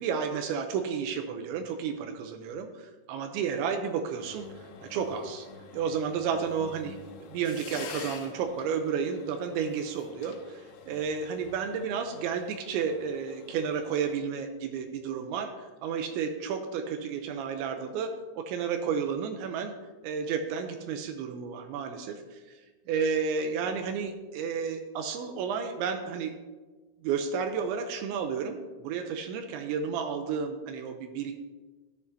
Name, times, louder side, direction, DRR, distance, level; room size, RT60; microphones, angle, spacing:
voice 1, 0.0-5.5 5.7-19.7 20.0-22.6 22.9-26.3 27.0-31.3, right 6 dB, 85° right, 6 dB, 3.0 m, -32 dB
sound 1, 4.2-14.2, left 6 dB, 80° left, 3.4 m, -48 dB
14.0 x 10.5 x 2.7 m, 1.3 s
omnidirectional pair, 5.4 m